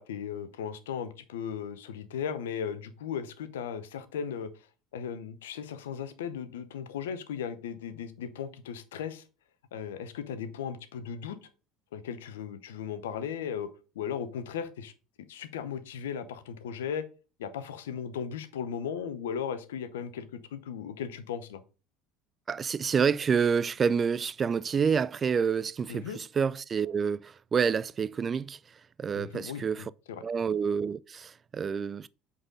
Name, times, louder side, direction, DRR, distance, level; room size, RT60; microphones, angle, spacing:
voice 1, 0.0-4.7 4.9-9.2 9.7-11.5 11.9-14.9 15.3-17.1 17.4-21.6 25.9-26.2 29.2-30.2, left 7 dB, 75° left, 0.7 m, -37 dB
voice 2, 22.5-29.9 30.2-32.1, right 6 dB, 35° right, 0.3 m, -28 dB
7.8 x 4.1 x 3.7 m
hypercardioid pair, 65°, 0 cm